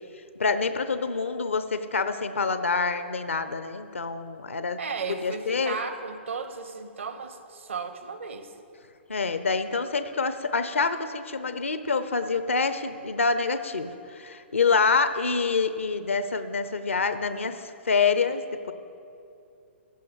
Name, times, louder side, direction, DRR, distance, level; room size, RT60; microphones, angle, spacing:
voice 1, 0.4-4.8 5.1-5.8 9.1-18.7, left 4 dB, 80° left, 11 dB, 0.8 m, -26 dB
voice 2, 4.8-8.5, right 5 dB, 75° right, 9 dB, 1.1 m, -35 dB
14.5 x 5.6 x 8.4 m, 2.6 s
figure-of-eight pair, 125°, 7 cm